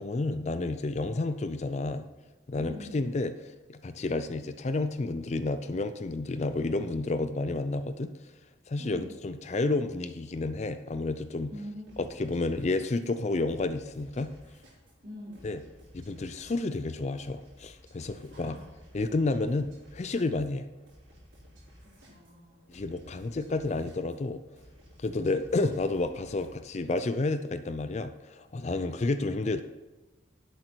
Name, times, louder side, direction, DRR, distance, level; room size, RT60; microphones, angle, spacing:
voice 1, 0.0-2.0 2.5-3.3 3.7-8.1 8.7-11.5 12.0-14.3 15.4-15.6 15.9-18.6 18.9-20.7 22.7-24.4 25.0-29.6, left 2 dB, 35° left, 11 dB, 0.4 m, -30 dB
voice 2, 2.5-3.1 8.8-9.1 11.5-12.0 15.0-15.5 18.3-18.7 22.0-22.6, equal, 45° right, -5 dB, 4.0 m, -44 dB
sound 1, 11.9-26.6, equal, 70° right, 4.1 m, -55 dB
11.0 x 8.0 x 4.5 m, 1.1 s
head